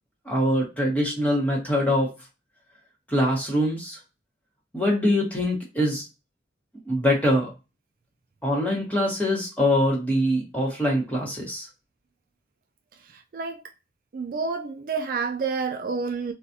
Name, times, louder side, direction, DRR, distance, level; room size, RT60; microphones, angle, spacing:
voice 1, 0.3-2.1 3.1-4.0 4.7-6.1 6.9-7.5 8.4-11.7, equal, 10° left, 1.2 m, -23 dB
voice 2, 14.1-16.3, right 5 dB, 50° right, 0.3 m, -28 dB
3.9 x 2.4 x 2.6 m
head